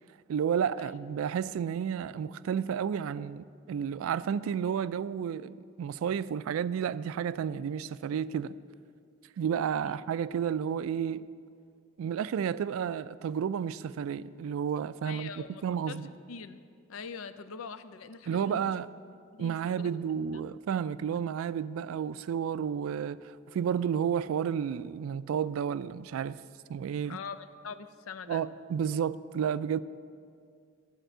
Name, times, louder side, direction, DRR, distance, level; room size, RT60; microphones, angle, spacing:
voice 1, 0.3-8.6 9.4-11.3 12.0-15.3 15.6-16.1 18.3-18.9 19.4-26.4 26.7-27.2 28.3-29.8, right 8 dB, 90° right, 0.3 m, -31 dB
voice 2, 15.0-16.0 16.3-16.6 16.9-18.8 19.3-19.9 27.1-28.5, left 5 dB, 90° left, 0.5 m, -43 dB
11.5 x 4.5 x 7.8 m
head